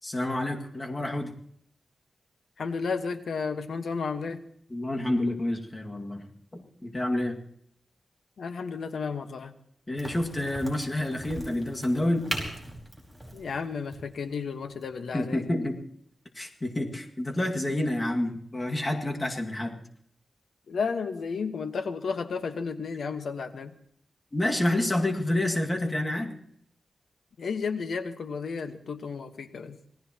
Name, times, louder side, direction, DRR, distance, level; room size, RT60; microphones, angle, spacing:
voice 1, 0.0-1.3 4.7-6.3 6.5-7.4 9.9-12.3 15.1-15.8 16.4-19.8 24.3-26.4, left 1 dB, 20° left, 1 dB, 2.0 m, -28 dB
voice 2, 2.6-4.4 8.4-9.5 13.3-15.4 20.7-23.7 27.4-29.8, left 5 dB, 80° left, 8 dB, 1.3 m, -32 dB
Crack, 10.0-15.4, right 1 dB, ahead, 5.0 m, -40 dB
26.5 x 18.0 x 3.0 m, 0.66 s
wide cardioid pair, 125°, 0 cm